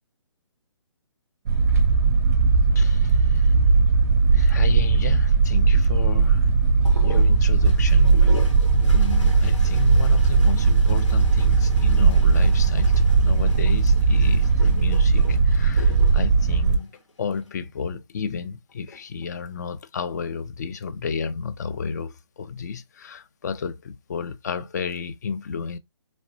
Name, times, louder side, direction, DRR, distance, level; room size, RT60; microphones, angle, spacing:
sound 1, 1.5-16.8, right 4 dB, 35° right, 0.5 m, -18 dB
voice 1, 2.8-3.5 4.3-6.5 7.0-8.4 8.7-16.9 17.2-25.8, left 6 dB, 35° left, 0.4 m, -32 dB
sound 2, 6.8-17.5 18.7-19.3, left 1 dB, 85° left, 1.6 m, -41 dB
3.9 x 3.1 x 2.5 m
figure-of-eight pair, 140°, 15 cm